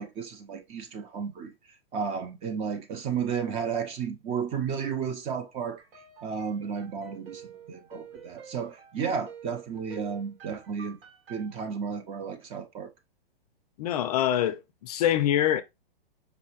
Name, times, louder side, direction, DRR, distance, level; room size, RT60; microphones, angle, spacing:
voice 1, 0.0-1.5 1.9-5.8 6.2-11.0 11.3-12.9, right 6 dB, 20° right, 0.5 m, -33 dB
sound 1, 5.8-11.6, right 7 dB, 70° right, 1.9 m, -49 dB
voice 2, 13.8-15.6, left 11 dB, 40° left, 0.4 m, -25 dB
5.0 x 2.7 x 3.0 m
hypercardioid pair, 130°, 30 cm